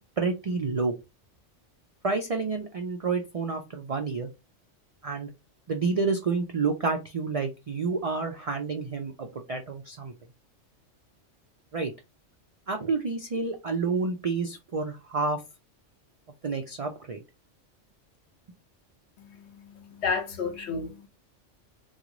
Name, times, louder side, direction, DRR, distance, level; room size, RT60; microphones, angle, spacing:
voice 1, 0.2-0.9 2.0-4.3 5.0-5.3 5.7-10.1 11.7-11.9 12.7-15.4 16.4-17.2, right 4 dB, 70° right, 0.3 m, -29 dB
voice 2, 19.2-21.1, left 5 dB, 65° left, 1.1 m, -32 dB
3.0 x 2.3 x 3.7 m
omnidirectional pair, 1.2 m